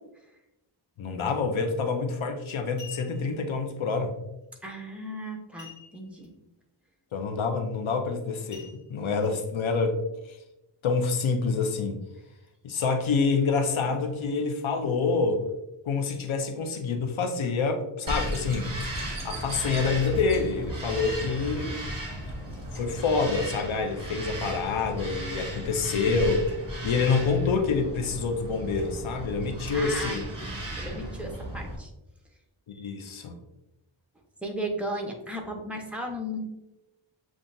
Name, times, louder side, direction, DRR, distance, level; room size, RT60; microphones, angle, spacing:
voice 1, 1.0-4.1 7.1-10.0 10.2-10.4 10.8-12.0 12.6-15.4 15.8-18.7 19.2-21.8 22.7-26.5 26.8-30.2 32.7-33.4, left 4 dB, 80° left, 4 dB, 0.7 m, -27 dB
sound 1, 1.9-2.1 2.6-3.4 5.6-6.3 6.6-6.7 7.2-7.4 8.5-9.3 9.9-10.0, left 7 dB, 40° left, 1.0 m, -48 dB
voice 2, 4.6-6.3 29.7-31.9 34.4-36.4, equal, 5° right, 1 dB, 0.8 m, -35 dB
Bird vocalization bird call bird song, 18.1-31.8, right 1 dB, 45° right, 1.4 m, -35 dB
7.2 x 2.4 x 2.6 m, 0.93 s
wide cardioid pair, 100°, 47 cm